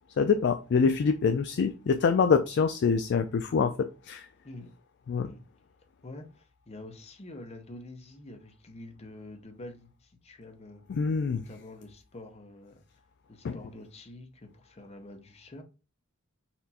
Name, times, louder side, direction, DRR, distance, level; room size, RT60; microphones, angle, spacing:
voice 1, 0.2-4.3 5.1-5.3 10.9-11.4 13.4-13.6, left 5 dB, 55° left, 0.3 m, -25 dB
voice 2, 6.0-10.8 11.3-12.8 13.3-15.6, left 2 dB, 30° left, 0.7 m, -47 dB
4.3 x 2.5 x 4.1 m
head